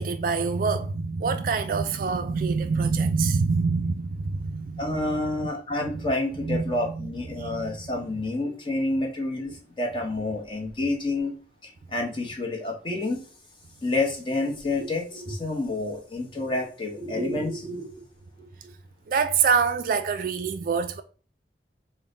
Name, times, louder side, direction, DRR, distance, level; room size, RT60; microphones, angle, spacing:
voice 1, 0.0-5.5 5.9-6.1 6.4-7.9 19.1-21.0, right 5 dB, 50° right, 0.3 m, -26 dB
voice 2, 4.8-11.3 11.6-13.3 13.8-17.9 18.4-18.5, left 2 dB, 30° left, 0.9 m, -29 dB
3.8 x 2.1 x 3.7 m
head